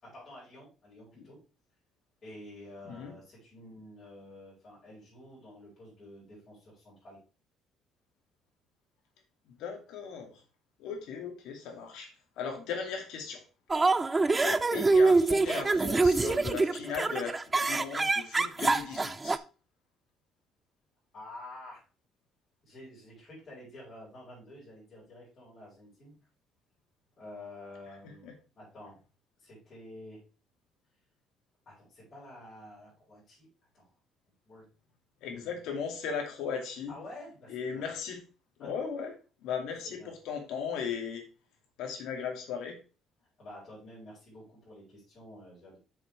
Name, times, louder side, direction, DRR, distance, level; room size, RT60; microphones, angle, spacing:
voice 1, 0.0-1.4 2.2-7.2 14.2-14.3 21.1-21.8 22.6-26.1 27.2-28.3 28.6-29.0 29.4-30.2 31.6-33.5 33.7-33.9 34.4-34.6 35.2-35.6 36.9-37.8 38.6-38.9 39.8-40.1 43.4-45.8, left 1 dB, 25° left, -9 dB, 4.8 m, -49 dB
voice 2, 2.8-3.2 9.6-10.4 10.8-13.4 14.4-17.4 17.6-19.4 28.2-28.3 35.2-36.9 37.5-38.2 38.6-39.1 39.4-41.3 41.8-42.8, left 6 dB, 80° left, 3 dB, 2.3 m, -37 dB
sound 1, 13.7-19.4, right 3 dB, 15° right, 0.3 m, -25 dB
8.4 x 6.3 x 3.2 m, 0.35 s
cardioid pair, 175°, 0 cm